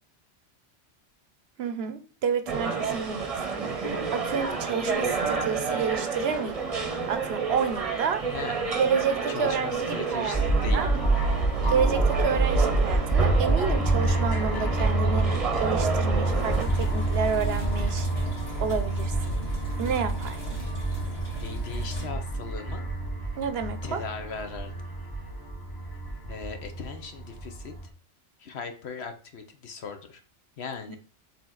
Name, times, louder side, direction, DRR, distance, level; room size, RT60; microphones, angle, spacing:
voice 1, 1.6-6.6 7.1-8.2 8.8-10.9 11.7-15.3 15.6-18.1 18.6-19.1 19.8-20.4 23.4-24.0, right 6 dB, 65° right, 0.9 m, -30 dB
sound 1, 2.5-16.6, right 5 dB, 35° right, 0.9 m, -30 dB
voice 2, 9.3-10.9 21.4-22.9 23.8-24.7 26.3-27.7 28.4-30.2 30.6-31.0, left 5 dB, 65° left, 1.2 m, -38 dB
sound 2, 10.3-27.9, right 2 dB, 20° left, 1.1 m, -27 dB
sound 3, 16.4-22.0, right 2 dB, 85° left, 3.5 m, -36 dB
7.0 x 3.7 x 3.8 m
omnidirectional pair, 1.2 m